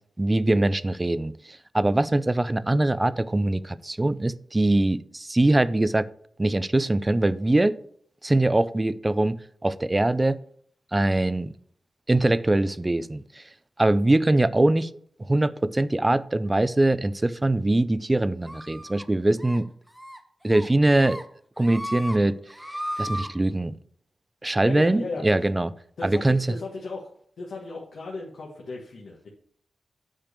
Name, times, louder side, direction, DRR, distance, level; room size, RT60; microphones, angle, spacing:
voice 1, 0.2-6.1 6.4-7.8 8.2-10.4 10.9-11.5 12.1-13.4 13.8-14.9 15.2-19.7 20.4-21.2 21.6-22.4 23.0-23.8 24.4-25.7 26.0-26.5, right 2 dB, 25° right, 0.4 m, -22 dB
sound 1, 18.5-19.0 19.4-19.6 19.9-20.2 20.5-21.2 21.6-22.2 22.5-23.3, equal, 5° right, 1.0 m, -35 dB
voice 2, 24.6-25.2 26.0-27.1 27.4-29.3, left 3 dB, 75° left, 1.4 m, -36 dB
8.9 x 3.4 x 6.6 m
cardioid pair, 55°, 0 cm